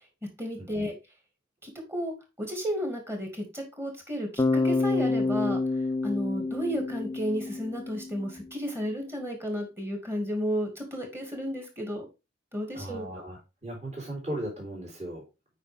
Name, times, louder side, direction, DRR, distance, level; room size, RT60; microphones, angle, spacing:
voice 1, 0.4-0.9 1.6-5.6 6.0-12.0 12.5-13.1, equal, 15° right, 2 dB, 2.3 m, -33 dB
Bass guitar, 4.4-8.3, left 3 dB, 15° left, 0.6 m, -28 dB
voice 2, 12.7-15.2, right 1 dB, 35° right, -3 dB, 3.6 m, -37 dB
8.2 x 5.0 x 3.6 m, 0.27 s
head